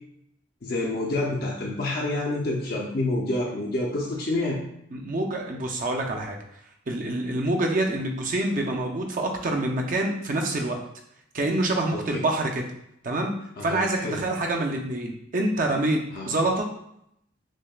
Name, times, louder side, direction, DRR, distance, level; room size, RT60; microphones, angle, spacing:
voice 1, 0.6-4.6 11.9-12.2 13.6-14.2 16.1-16.3, left 2 dB, 50° left, -3 dB, 0.5 m, -28 dB
voice 2, 4.9-6.4 6.9-10.8 11.3-12.6 13.0-13.3 13.6-16.0 16.3-16.7, right 2 dB, 40° right, 2 dB, 0.5 m, -26 dB
6.2 x 2.2 x 2.3 m, 0.75 s
head